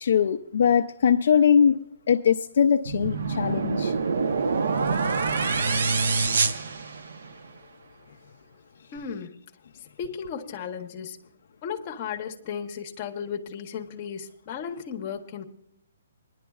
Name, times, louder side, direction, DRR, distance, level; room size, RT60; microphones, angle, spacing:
voice 1, 0.0-1.8 2.1-3.9, left 7 dB, 50° left, 0.4 m, -21 dB
sound 1, 2.9-7.5, right 4 dB, 65° right, 0.9 m, -26 dB
voice 2, 8.9-9.3 10.0-11.2 11.6-15.4, left 7 dB, 20° left, 0.9 m, -35 dB
23.0 x 11.0 x 2.3 m
hypercardioid pair, 180°, 0 cm